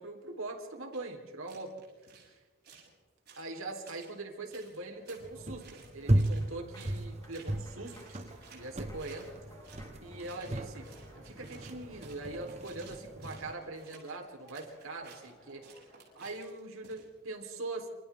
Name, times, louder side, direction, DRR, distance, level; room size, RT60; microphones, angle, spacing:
voice 1, 0.0-1.8 2.2-2.4 3.4-9.3 10.0-15.7 16.1-17.9, right 2 dB, 85° right, 3 dB, 3.7 m, -42 dB
sound 1, 0.9-1.0 1.5-2.3 2.6-2.9 3.3-4.1 4.5-5.2 5.6-6.5 6.7-7.1 7.3-7.6 7.8-9.9 10.2-17.4, right 6 dB, 50° right, 7.2 m, -56 dB
Applause, 4.5-16.3, left 1 dB, 15° left, 6.6 m, -58 dB
sound 2, 5.2-13.5, right 1 dB, 30° right, 1.1 m, -36 dB
27.5 x 27.5 x 3.6 m, 1.3 s
head